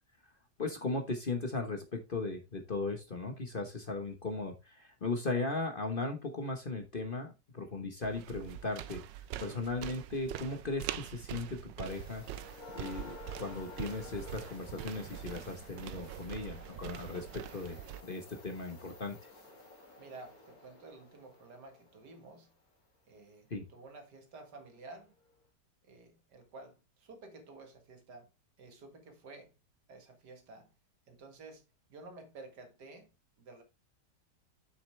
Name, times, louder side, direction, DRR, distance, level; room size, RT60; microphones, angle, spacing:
voice 1, 0.6-9.0 9.4-12.2 12.7-17.8 18.0-19.2 23.5-23.7, left 3 dB, 35° left, 1.2 m, -37 dB
sound 1, 8.0-18.0, right 12 dB, 90° right, 1.3 m, -44 dB
sound 2, 11.9-22.5 24.5-24.6 25.2-25.3, left 2 dB, 55° left, 2.9 m, -53 dB
voice 2, 20.0-22.5 23.1-25.1 25.8-28.3 28.6-29.6 29.9-30.7 31.1-31.6 31.9-33.6, right 3 dB, 70° right, 2.3 m, -52 dB
7.5 x 6.7 x 3.3 m
omnidirectional pair, 1.9 m